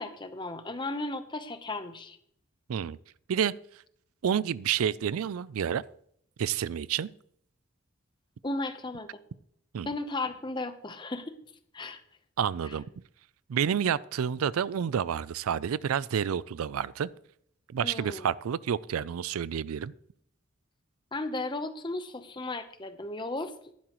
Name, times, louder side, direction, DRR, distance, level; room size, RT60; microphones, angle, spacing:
voice 1, 0.0-2.2 8.4-9.2 9.8-11.4 11.7-12.0 12.7-12.8 17.8-18.3 21.1-23.5, left 2 dB, 20° left, 0.8 m, -35 dB
voice 2, 4.2-5.8 6.4-7.1 9.7-9.9 12.4-12.9 13.5-17.1 17.7-19.9, right 8 dB, 90° right, 0.4 m, -29 dB
15.0 x 11.5 x 3.1 m
head